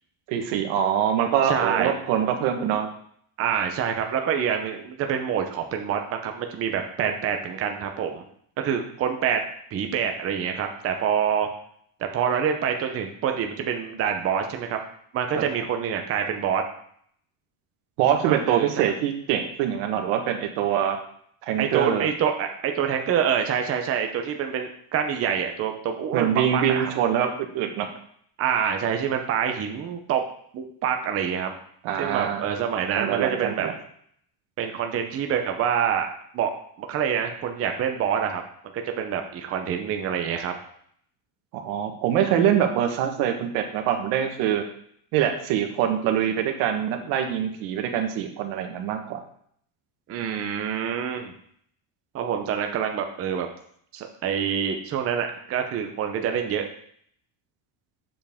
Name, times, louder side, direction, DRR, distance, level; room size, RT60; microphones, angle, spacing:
voice 1, 0.3-2.9 15.3-15.5 18.0-21.0 21.5-22.1 26.1-27.9 31.8-32.4 32.9-33.7 41.5-44.6 45.1-49.2, right 9 dB, 85° right, 5 dB, 1.5 m, -24 dB
voice 2, 1.4-1.9 3.4-8.2 8.6-9.4 9.7-11.5 12.0-14.8 15.1-16.6 18.3-18.8 21.6-26.9 28.4-30.2 30.5-31.5 32.0-33.7 34.6-36.1 36.3-36.5 36.8-38.4 38.7-40.5 50.1-51.3 52.1-53.5 53.9-56.7, right 8 dB, 30° right, 4 dB, 0.7 m, -26 dB
7.4 x 7.1 x 3.5 m, 0.64 s
cardioid pair, 160°, 49 cm